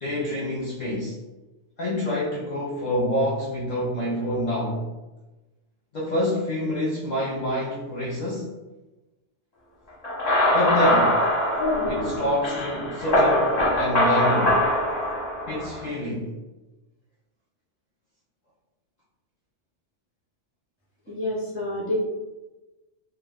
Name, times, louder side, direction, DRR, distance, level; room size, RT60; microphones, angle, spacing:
voice 1, 0.0-1.2 1.8-4.9 5.9-8.5 10.5-11.2 11.9-14.6 15.5-16.3, left 1 dB, 60° left, -5 dB, 0.4 m, -27 dB
sound 1, 10.0-15.8, left 1 dB, 40° left, 0.8 m, -22 dB
voice 2, 21.1-22.0, left 1 dB, 20° right, -7 dB, 0.3 m, -28 dB
2.3 x 2.3 x 3.4 m, 1.1 s
omnidirectional pair, 1.3 m